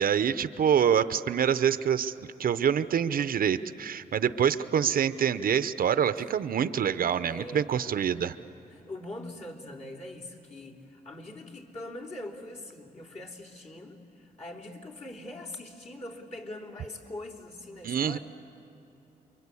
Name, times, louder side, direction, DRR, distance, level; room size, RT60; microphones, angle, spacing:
voice 1, 0.0-2.1 2.4-8.4 17.8-18.2, right 8 dB, 60° right, 13 dB, 0.7 m, -26 dB
voice 2, 7.3-8.1 8.7-18.2, left 1 dB, 45° left, -2 dB, 3.5 m, -42 dB
28.5 x 23.5 x 8.4 m, 2.9 s
cardioid pair, 90°, 16 cm